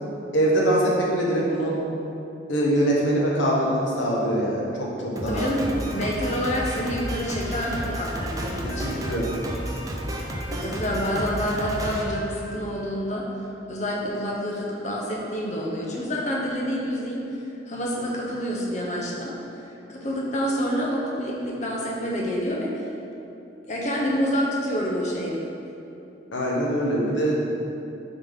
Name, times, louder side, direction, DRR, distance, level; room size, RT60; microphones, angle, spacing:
voice 1, 0.3-1.8 2.5-5.5 8.8-9.3 26.3-27.3, right 1 dB, 85° left, -3 dB, 1.1 m, -23 dB
Drum kit, 5.2-12.9, equal, 20° right, 0.4 m, -32 dB
voice 2, 5.3-5.7 5.9-9.2 10.5-13.2 13.7-17.2 17.7-19.3 19.9-22.7 23.7-25.4, equal, 40° left, -3 dB, 0.8 m, -27 dB
6.9 x 4.0 x 3.6 m, 2.8 s
head